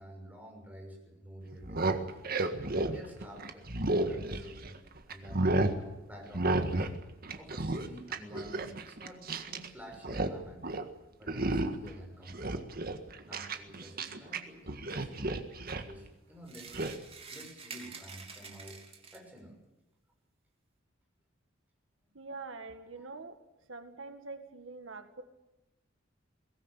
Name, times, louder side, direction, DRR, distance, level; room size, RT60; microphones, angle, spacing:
voice 1, 0.0-2.2 2.9-3.6 4.1-4.8 5.1-6.9 7.4-10.7 11.2-12.7 13.3-15.2 15.6-16.8 17.3-18.9 19.1-19.6 22.9-23.0, equal, 10° right, 1 dB, 6.7 m, -50 dB
sound 1, 1.5-4.8 5.1-5.8 6.3-7.0 7.2-9.7 9.9-10.4 10.6-10.9 11.3-11.9 12.3-14.4 14.7-15.9 16.7-17.0, right 2 dB, 50° right, 1.8 m, -32 dB
sound 2, 16.5-19.4, right 5 dB, 30° right, 3.0 m, -48 dB
voice 2, 22.1-23.4 23.7-25.2, right 3 dB, 90° right, 7 dB, 2.0 m, -44 dB
22.5 x 18.5 x 8.3 m, 0.97 s
head